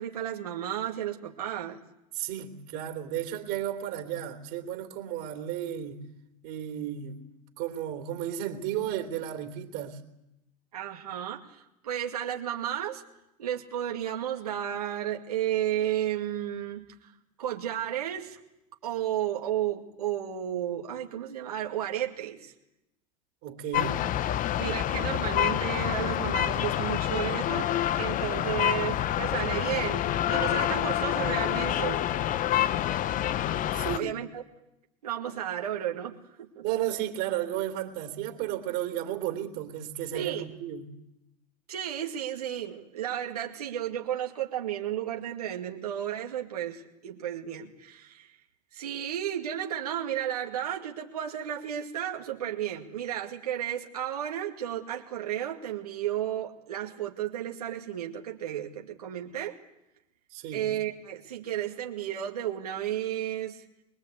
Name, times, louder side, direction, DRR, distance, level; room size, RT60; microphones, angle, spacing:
voice 1, 0.0-1.8 10.7-13.0 13.4-17.1 17.4-18.4 18.8-22.5 24.6-27.7 28.0-32.1 33.9-34.4 35.0-36.6 40.1-40.5 41.7-48.3 48.7-59.6 60.5-63.6, right 11 dB, 90° right, 1 dB, 2.4 m, -33 dB
voice 2, 2.1-6.0 6.4-7.2 7.6-10.0 23.4-24.0 24.7-24.8 33.7-34.1 36.6-40.9 60.3-60.7, right 11 dB, 65° right, 3 dB, 3.4 m, -33 dB
sound 1, 23.7-34.0, left 12 dB, 45° left, 0.9 m, -27 dB
24.5 x 21.0 x 8.3 m, 0.87 s
hypercardioid pair, 85°, 19 cm